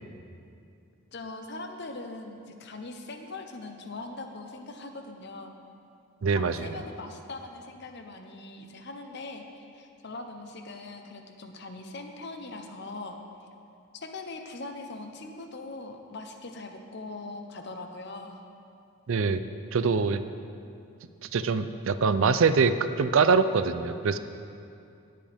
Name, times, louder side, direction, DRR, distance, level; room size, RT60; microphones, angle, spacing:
voice 1, 1.1-5.5 6.3-13.2 13.9-18.4, left 2 dB, 50° left, 5 dB, 0.8 m, -41 dB
voice 2, 6.2-6.7 19.1-19.4 19.7-20.2 21.3-24.2, right 5 dB, 65° right, 11 dB, 0.4 m, -24 dB
18.5 x 7.7 x 3.5 m, 2.5 s
head